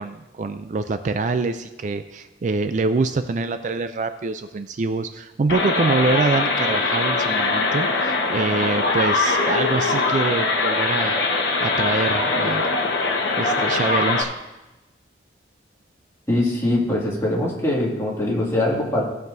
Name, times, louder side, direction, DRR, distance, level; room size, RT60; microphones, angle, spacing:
voice 1, 0.0-11.2 11.6-12.8 13.4-14.3, right 3 dB, 45° right, 10 dB, 0.4 m, -25 dB
sound 1, 5.5-14.2, left 3 dB, 70° left, 1.2 m, -22 dB
voice 2, 16.3-19.0, left 1 dB, 15° left, -4 dB, 2.2 m, -22 dB
17.5 x 7.3 x 2.7 m, 1.1 s
head